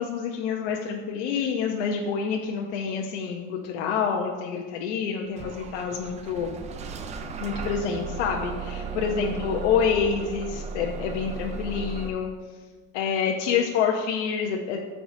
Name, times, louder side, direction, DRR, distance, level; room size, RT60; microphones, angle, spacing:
voice 1, 0.0-6.5 7.4-12.3 12.9-14.8, left 6 dB, 80° left, 1 dB, 0.9 m, -27 dB
Bus / Engine starting, 5.4-12.1, right 5 dB, 20° right, 0.3 m, -35 dB
13.0 x 4.8 x 2.7 m, 1.4 s
supercardioid pair, 135°, 35 cm